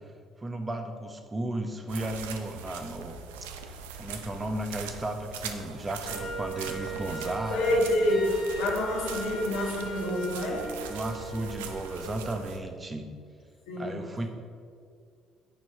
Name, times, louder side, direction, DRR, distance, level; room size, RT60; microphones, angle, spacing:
voice 1, 0.4-3.2 3.4-3.5 4.0-7.8 10.9-13.1 13.8-14.3, right 1 dB, 25° right, 6 dB, 1.0 m, -34 dB
sound 1, 1.9-12.6, right 6 dB, 85° right, 0.5 m, -41 dB
Wind instrument woodwind instrument, 6.0-12.1, right 2 dB, 55° left, 1.0 m, -39 dB
voice 2, 7.5-10.7 13.7-14.0, left 1 dB, 80° left, -5 dB, 1.7 m, -27 dB
9.2 x 4.6 x 4.6 m, 2.2 s
hypercardioid pair, 55°, 0 cm